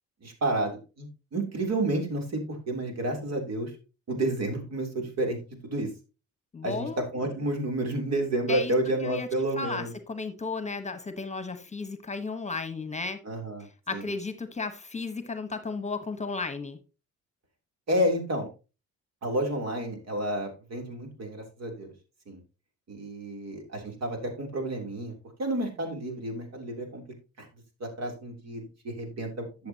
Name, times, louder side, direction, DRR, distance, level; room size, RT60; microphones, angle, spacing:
voice 1, 0.2-3.7 4.1-5.4 5.6-5.9 6.6-9.9 13.2-14.1 17.9-18.5 19.2-21.9 22.3-22.4 22.9-27.0 27.4-27.5 27.8-29.7, right 1 dB, 60° right, 3.3 m, -30 dB
voice 2, 6.5-7.0 8.5-8.7 9.0-9.3 9.6-13.2 13.9-16.8, left 3 dB, 20° left, 1.2 m, -34 dB
11.5 x 7.1 x 2.9 m
cardioid pair, 90°, 30 cm